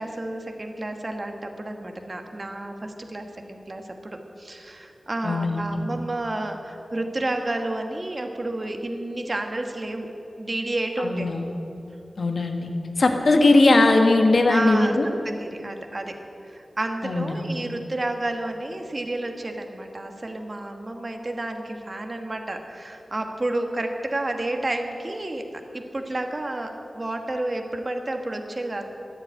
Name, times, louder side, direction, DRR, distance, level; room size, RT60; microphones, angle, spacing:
voice 1, 0.0-10.1 10.4-11.3 14.5-14.9 15.2-16.2 16.4-25.4 25.7-28.8, right 2 dB, 40° right, 4 dB, 1.3 m, -30 dB
voice 2, 5.2-5.8 11.0-11.5 12.2-12.7 13.0-15.1 17.0-17.5, left 2 dB, 75° left, 4 dB, 1.6 m, -19 dB
14.5 x 10.5 x 8.8 m, 2.8 s
wide cardioid pair, 75°, 0 cm